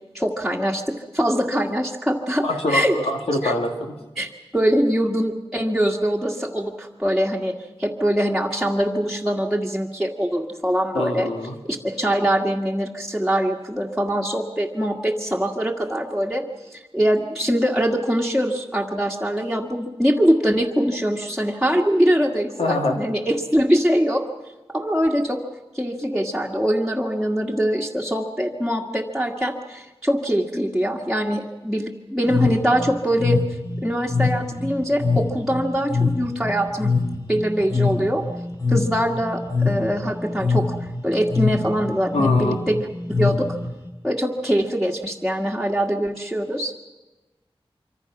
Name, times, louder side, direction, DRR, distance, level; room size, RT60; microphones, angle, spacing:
voice 1, 0.1-3.0 3.4-3.5 4.2-7.5 7.8-11.3 11.6-16.4 16.7-24.2 24.7-25.4 25.7-33.4 33.8-36.9 37.3-38.2 38.7-43.5 44.0-46.7, equal, ahead, -3 dB, 1.9 m, -23 dB
voice 2, 2.4-4.0 10.9-11.5 22.6-23.1 42.1-42.6, left 1 dB, 90° left, 2 dB, 2.3 m, -24 dB
sound 1, 32.3-43.9, left 4 dB, 40° left, 3.3 m, -24 dB
25.5 x 25.0 x 6.1 m, 1.1 s
wide cardioid pair, 90°, 10 cm